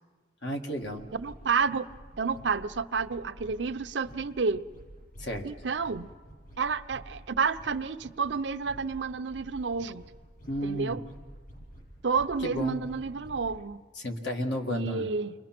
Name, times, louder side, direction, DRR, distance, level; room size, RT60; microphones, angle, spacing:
voice 1, 0.4-1.0 5.2-5.5 10.5-11.0 12.4-12.8 14.0-15.1, equal, 75° left, 3 dB, 2.0 m, -32 dB
sound 1, 0.8-13.6, equal, 50° left, 6.9 m, -50 dB
voice 2, 1.1-1.9 2.2-4.6 5.4-6.1 6.6-10.0 10.6-11.0 12.0-13.8 14.7-15.3, right 5 dB, 80° right, 11 dB, 0.7 m, -30 dB
29.5 x 22.0 x 6.0 m, 1.5 s
head